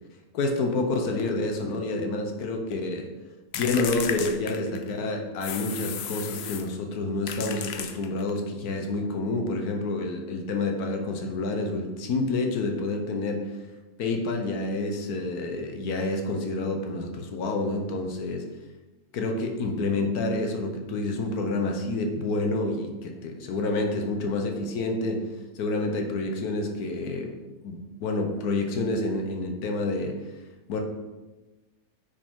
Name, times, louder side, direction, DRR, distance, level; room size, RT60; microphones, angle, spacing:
voice 1, 0.3-3.1 3.5-13.5 14.0-18.4 19.1-25.2 25.5-27.3 27.6-30.1 30.7-30.8, left 2 dB, 90° left, 3 dB, 1.4 m, -28 dB
sound 1, 3.5-5.0 5.4-6.7 7.3-8.4, left 8 dB, 65° left, 0.6 m, -34 dB
9.3 x 5.0 x 3.7 m, 1.2 s
omnidirectional pair, 1.6 m